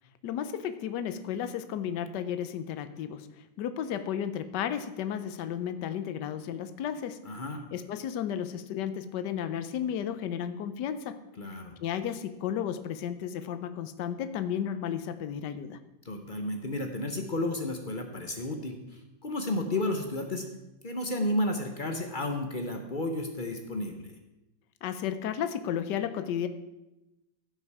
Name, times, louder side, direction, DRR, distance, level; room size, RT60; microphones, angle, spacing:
voice 1, 0.2-3.3 3.6-7.2 7.7-11.2 11.8-15.8 24.8-26.5, left 9 dB, 70° left, 10 dB, 1.3 m, -33 dB
voice 2, 7.2-7.6 11.4-11.8 16.0-18.8 19.2-20.5 20.8-24.1, left 1 dB, 40° left, 4 dB, 0.8 m, -32 dB
16.0 x 5.8 x 4.8 m, 0.97 s
omnidirectional pair, 2.1 m